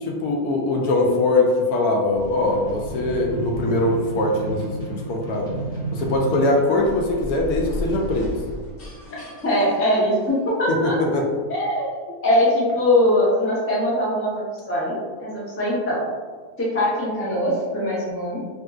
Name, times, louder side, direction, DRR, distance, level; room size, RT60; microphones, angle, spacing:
voice 1, 0.0-5.5 5.9-8.3 10.7-11.3, left 2 dB, 80° left, 0 dB, 1.1 m, -22 dB
sound 1, 2.1-7.9, right 1 dB, 5° left, 0.8 m, -32 dB
sound 2, 6.7-10.7, left 1 dB, 45° left, 0.9 m, -35 dB
voice 2, 9.4-10.9 11.5-16.0 16.6-18.4, left 1 dB, 20° left, -6 dB, 0.4 m, -22 dB
3.5 x 2.6 x 2.3 m, 1.5 s
omnidirectional pair, 1.6 m